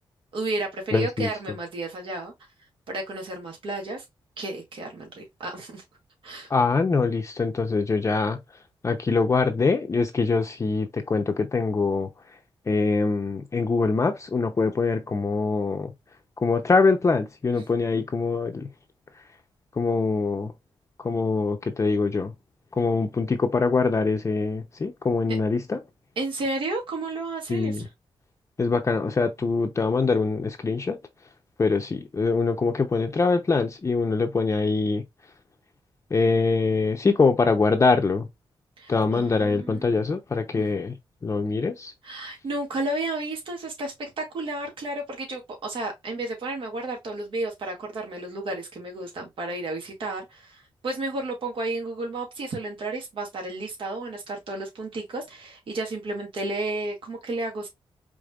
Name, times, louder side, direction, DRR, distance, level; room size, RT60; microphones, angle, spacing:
voice 1, 0.3-2.3 2.9-4.0 4.4-5.8 6.2-6.5 26.2-27.9 38.8-39.9 40.6-40.7 42.0-57.7, right 2 dB, 65° right, 1.9 m, -32 dB
voice 2, 0.9-1.3 6.5-8.4 8.8-12.1 12.7-15.9 16.4-18.7 19.8-20.5 21.0-22.3 22.8-25.8 27.5-27.9 28.6-31.0 31.6-35.0 36.1-38.3 38.9-40.9 41.2-41.9, left 4 dB, 30° left, 0.6 m, -23 dB
5.0 x 3.4 x 2.3 m
cardioid pair, 105°, 9 cm